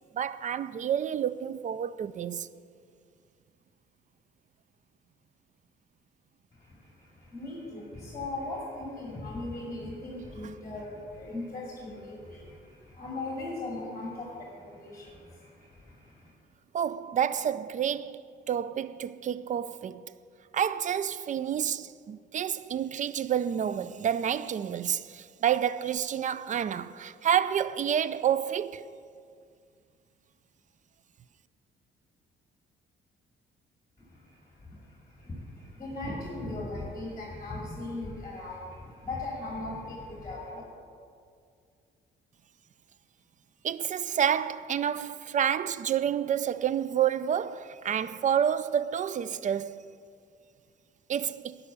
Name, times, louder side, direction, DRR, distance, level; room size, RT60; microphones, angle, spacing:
voice 1, 0.1-2.5 16.7-20.0 20.5-28.8 43.6-49.8 51.1-51.6, right 9 dB, 40° right, 0.4 m, -29 dB
voice 2, 6.5-16.3 34.1-40.6, left 2 dB, 15° left, 2.5 m, -39 dB
11.5 x 5.5 x 7.0 m
cardioid pair, 90°, 20 cm